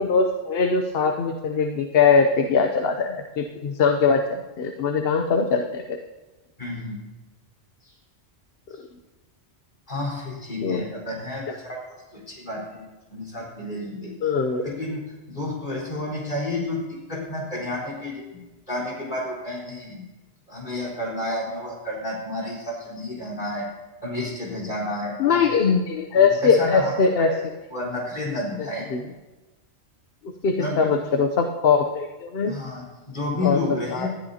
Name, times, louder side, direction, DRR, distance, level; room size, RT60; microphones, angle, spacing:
voice 1, 0.0-6.0 10.6-10.8 14.2-14.6 25.2-27.3 28.9-29.0 30.4-32.5 33.4-33.6 33.9-34.1, left 5 dB, 60° left, 5 dB, 1.0 m, -21 dB
voice 2, 6.6-7.0 7.8-7.9 9.9-11.8 12.1-12.8 13.1-14.3 14.6-15.0 15.3-18.3 18.7-20.1 20.5-23.7 24.0-25.4 26.1-27.4 27.7-28.9 30.5-30.9 32.5-34.1, left 2 dB, 45° left, -4 dB, 4.4 m, -30 dB
19.5 x 13.0 x 2.8 m, 1.1 s
omnidirectional pair, 1.1 m